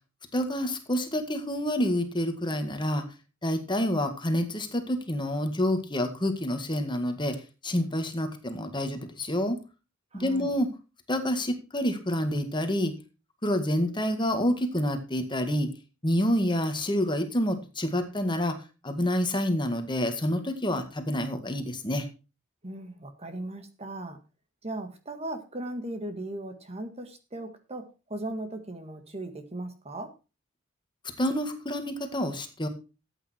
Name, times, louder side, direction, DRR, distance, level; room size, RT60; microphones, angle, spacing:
voice 1, 0.3-3.0 3.4-7.4 7.6-9.6 10.2-10.7 11.1-12.9 13.4-15.7 16.0-18.5 18.8-22.1 31.2-32.7, left 1 dB, 25° left, 7 dB, 1.9 m, -28 dB
voice 2, 10.1-10.5 22.6-24.2 24.6-27.8 28.1-30.1, right 1 dB, 30° right, 8 dB, 1.8 m, -37 dB
13.5 x 8.7 x 4.5 m, 0.31 s
head